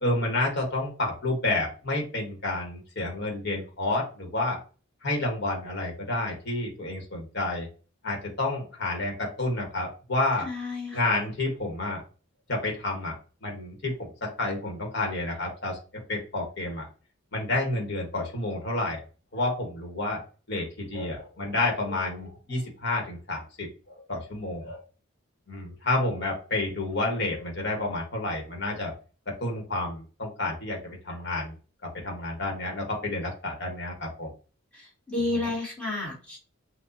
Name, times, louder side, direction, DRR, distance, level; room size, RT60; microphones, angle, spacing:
voice 1, 0.0-4.6 5.0-7.7 8.0-10.5 10.9-12.0 12.5-13.1 13.4-16.9 17.3-19.0 19.3-20.2 20.5-24.8 25.5-28.9 29.3-31.5 31.8-34.3 35.3-35.5, left 2 dB, 55° left, 1 dB, 1.5 m, -30 dB
voice 2, 10.4-11.0 34.7-36.4, left 2 dB, 5° left, -3 dB, 2.1 m, -31 dB
6.0 x 2.6 x 2.8 m, 0.36 s
head